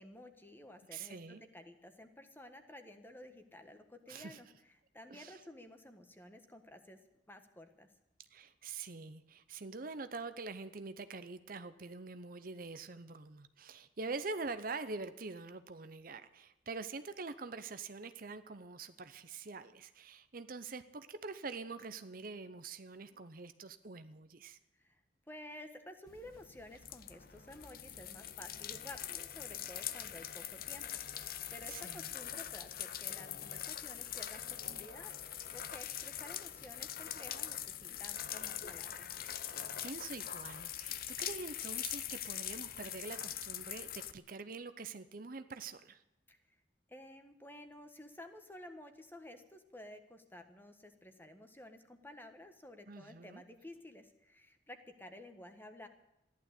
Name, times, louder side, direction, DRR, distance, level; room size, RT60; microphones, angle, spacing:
voice 1, 0.0-7.0 7.3-7.9 24.8-25.0 25.3-39.1 46.3-46.4 46.9-55.9, left 1 dB, 10° left, 7 dB, 1.5 m, -53 dB
voice 2, 0.9-1.4 4.1-4.4 5.1-5.4 8.3-24.6 31.7-32.1 39.8-46.0 52.9-53.4, right 3 dB, 50° right, 11 dB, 0.8 m, -45 dB
sound 1, 26.1-44.1, left 11 dB, 50° left, 0.8 m, -43 dB
15.0 x 11.5 x 8.2 m, 0.87 s
head